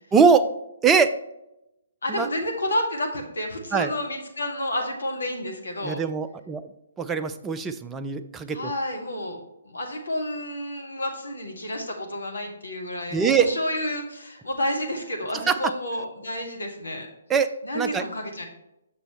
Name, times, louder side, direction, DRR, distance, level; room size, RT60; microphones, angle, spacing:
voice 1, 0.1-0.5 0.8-1.1 2.1-2.3 3.7-3.9 5.8-6.7 7.0-8.7 13.1-13.5 15.3-15.6 17.3-18.0, right 6 dB, 10° right, 9 dB, 0.4 m, -22 dB
voice 2, 2.0-6.0 8.5-9.4 9.6-17.1 17.6-18.4, left 1 dB, 65° left, 3 dB, 1.5 m, -30 dB
7.8 x 6.1 x 3.1 m, 0.87 s
figure-of-eight pair, 130°, 0 cm